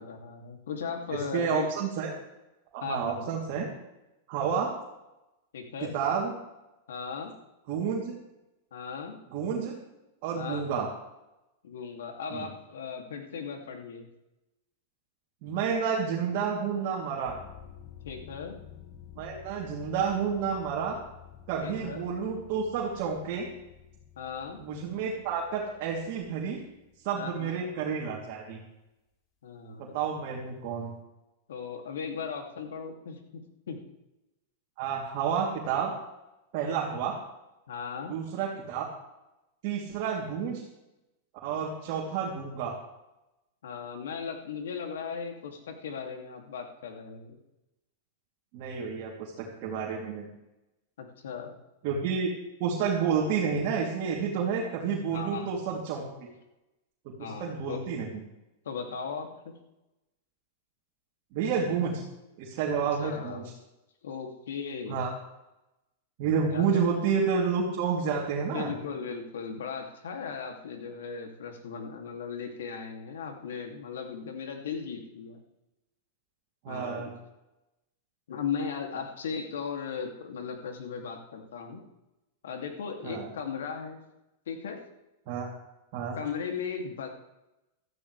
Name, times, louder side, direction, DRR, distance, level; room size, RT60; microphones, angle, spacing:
voice 1, 0.0-1.7 2.8-3.2 5.5-6.0 6.9-7.3 8.7-9.2 10.3-10.7 11.6-14.1 18.0-18.6 21.6-22.0 24.2-24.6 27.1-27.6 29.4-30.0 31.5-33.8 37.7-38.1 43.6-47.3 51.0-51.5 55.1-55.6 57.2-57.8 58.6-59.5 63.0-63.4 64.0-65.0 66.5-66.8 68.5-75.4 76.7-77.1 78.3-81.8 82.4-84.0 84.5-84.8 86.1-87.1, left 6 dB, 90° left, 3 dB, 2.7 m, -37 dB
voice 2, 1.1-2.2 2.7-3.7 4.3-4.7 5.8-6.3 7.7-8.1 9.3-9.8 10.2-10.9 12.3-12.5 15.4-17.4 19.1-21.0 21.5-23.5 24.6-26.6 27.0-28.6 29.8-30.9 34.8-35.9 36.5-37.2 38.1-38.8 39.6-40.6 41.4-42.8 48.5-50.3 51.8-52.3 52.6-56.3 57.0-58.2 61.3-62.0 62.4-63.4 64.9-65.1 66.2-68.7 76.6-77.1 83.0-83.3 85.3-85.5 85.9-86.2, right 6 dB, 50° right, -3 dB, 3.2 m, -30 dB
sound 1, 17.2-28.1, left 9 dB, 35° left, 2.1 m, -51 dB
16.0 x 14.0 x 3.4 m, 0.95 s
supercardioid pair, 140°, 0 cm